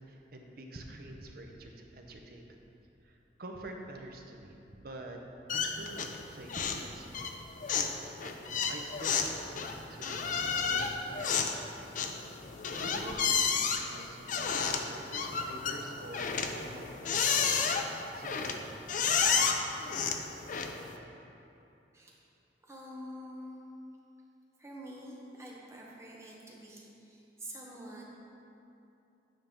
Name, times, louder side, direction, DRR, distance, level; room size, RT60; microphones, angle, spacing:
voice 1, 0.0-2.6 3.0-5.2 5.5-7.1 7.7-7.9 8.2-10.3 10.7-11.6 12.8-17.6 18.1-18.7, right 1 dB, 55° right, 2 dB, 0.7 m, -47 dB
sound 1, 5.5-6.2 6.5-6.9 7.1-21.0, left 6 dB, 45° left, 0.4 m, -31 dB
voice 2, 22.6-23.6 24.6-28.2, equal, 15° right, -3 dB, 0.9 m, -47 dB
9.1 x 5.2 x 3.6 m, 2.8 s
head